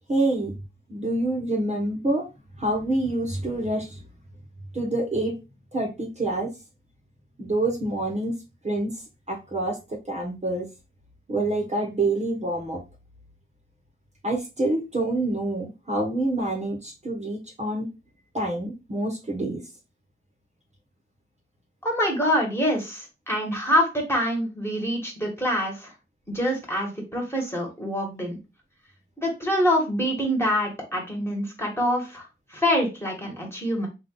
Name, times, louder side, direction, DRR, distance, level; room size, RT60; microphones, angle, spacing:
voice 1, 0.1-0.5 0.9-2.2 2.6-4.0 4.7-5.3 5.7-6.5 7.4-8.3 8.6-8.9 9.3-9.8 10.1-10.7 11.3-12.8 14.2-17.9 18.3-19.6, right 2 dB, 30° right, 0 dB, 1.2 m, -26 dB
voice 2, 21.8-25.9 26.3-28.4 29.2-33.9, equal, 10° left, -1 dB, 1.7 m, -25 dB
3.8 x 2.7 x 3.9 m, 0.27 s
wide cardioid pair, 90°, 21 cm